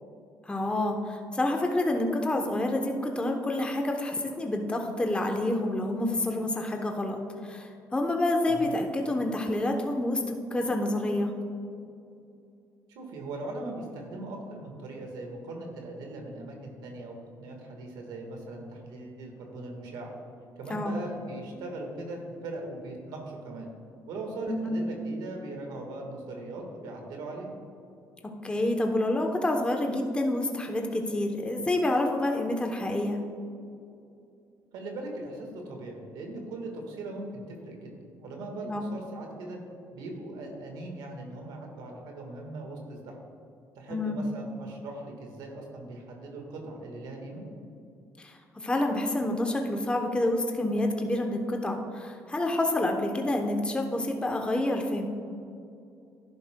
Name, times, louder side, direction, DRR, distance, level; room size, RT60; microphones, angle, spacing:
voice 1, 0.5-11.3 20.7-21.0 24.5-24.7 28.4-33.2 38.6-38.9 43.9-44.3 48.2-55.1, left 1 dB, 15° left, 3 dB, 0.8 m, -28 dB
voice 2, 12.9-20.1 20.5-23.7 24.1-27.5 34.7-39.6 39.9-43.1 43.7-47.4, right 2 dB, 85° right, 2 dB, 1.5 m, -39 dB
11.0 x 10.5 x 2.2 m, 2.6 s
cardioid pair, 100°, 7 cm